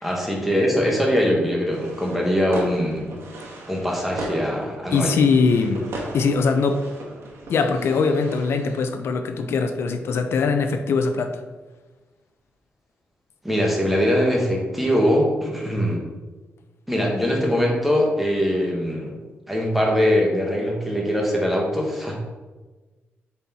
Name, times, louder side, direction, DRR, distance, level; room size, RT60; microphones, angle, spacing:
voice 1, 0.0-3.2 3.7-5.1 13.4-16.1 16.9-19.2 19.5-22.2, equal, 5° right, -2 dB, 1.4 m, -22 dB
sound 1, 1.7-8.9, right 1 dB, 80° right, 1.4 m, -37 dB
voice 2, 4.9-5.9 6.1-6.9 7.5-11.3, left 4 dB, 70° left, 7 dB, 0.7 m, -21 dB
7.2 x 4.5 x 4.3 m, 1.3 s
wide cardioid pair, 155°, 4 cm